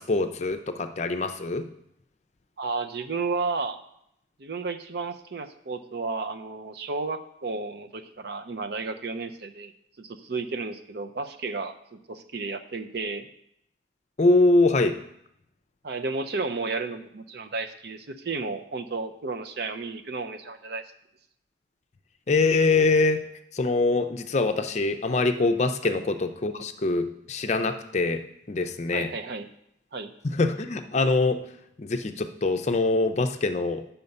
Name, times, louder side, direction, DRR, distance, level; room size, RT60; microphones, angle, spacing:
voice 1, 0.0-1.6 14.2-14.9 22.3-23.2 23.5-28.2 28.5-29.1 30.2-31.4 31.8-33.8, left 3 dB, 35° left, 7 dB, 0.5 m, -23 dB
voice 2, 2.6-3.8 4.4-9.7 10.0-13.3 15.8-20.8 25.8-26.0 28.9-29.5 29.9-30.1, right 4 dB, 60° right, 8 dB, 0.6 m, -32 dB
6.9 x 5.7 x 5.3 m, 0.75 s
head